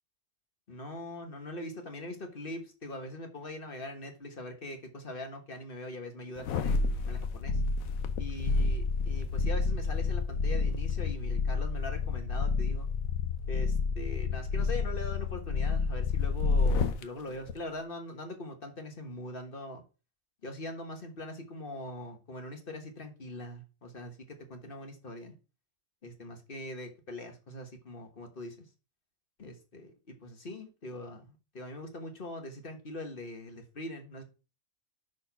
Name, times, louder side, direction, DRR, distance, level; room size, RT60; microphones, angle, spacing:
voice 1, 0.7-7.6 8.2-12.9 13.5-19.8 20.4-25.3 26.0-28.6 29.4-29.9 30.2-34.2, left 1 dB, 45° left, 1.5 m, -42 dB
sound 1, 6.4-17.0 17.5-17.6, left 4 dB, 85° left, 1.2 m, -29 dB
6.3 x 4.4 x 5.7 m
omnidirectional pair, 1.4 m